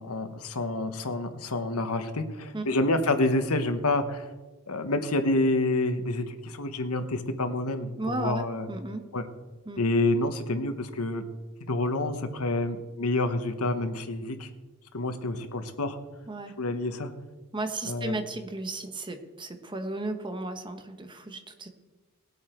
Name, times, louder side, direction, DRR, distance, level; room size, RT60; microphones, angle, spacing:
voice 1, 0.0-4.3 4.7-8.7 9.1-9.3 9.8-11.2 11.7-14.5 14.9-16.0 16.6-17.1 17.8-18.2, left 2 dB, 90° left, 8 dB, 1.2 m, -28 dB
voice 2, 8.0-9.0 9.7-9.8 16.3-16.5 17.5-21.7, right 2 dB, 20° right, 7 dB, 1.2 m, -34 dB
18.5 x 8.6 x 4.5 m, 1.3 s
head